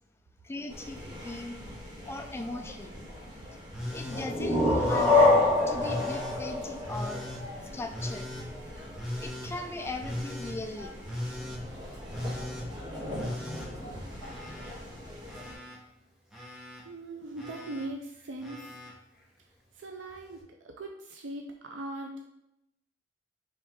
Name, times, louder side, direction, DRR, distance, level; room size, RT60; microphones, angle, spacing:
voice 1, 0.4-1.6 2.1-3.0 3.9-5.2 5.7-7.2 7.7-8.3 9.2-10.9, left 2 dB, 15° left, 5 dB, 0.3 m, -38 dB
sound 1, 0.7-15.5, left 1 dB, 25° right, 1.4 m, -43 dB
Telephone, 3.7-4.3 4.8-5.3 5.8-6.4 6.9-7.4 7.9-8.5 9.0-9.5 10.0-10.6 11.0-11.6 12.1-12.7 13.1-14.7 15.0-15.8 16.3-16.8 17.4-17.9 18.4-18.9 20.1-20.2, left 1 dB, 5° right, 0.8 m, -38 dB
sound 2, 4.1-7.7, left 2 dB, 40° left, 1.5 m, -24 dB
voice 2, 16.8-18.6 19.8-20.4 20.8-22.3, right 2 dB, 75° right, 2 dB, 0.5 m, -39 dB
4.5 x 3.3 x 3.5 m, 0.84 s
head